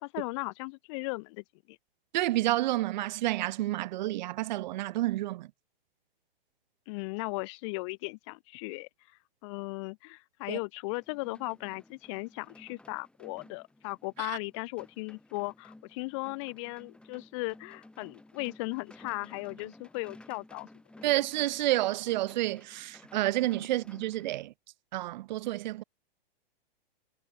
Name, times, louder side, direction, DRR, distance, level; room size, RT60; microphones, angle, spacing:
voice 1, 0.0-1.8 6.9-8.9 9.4-20.7, left 28 dB, 35° left, 0.5 m, -37 dB
voice 2, 2.1-5.5 10.5-10.6 14.2-14.4 21.0-24.5 24.9-25.8, right 16 dB, 50° right, 0.6 m, -29 dB
sound 1, 10.9-24.3, left 1 dB, 5° left, 2.7 m, -55 dB
hypercardioid pair, 130°, 29 cm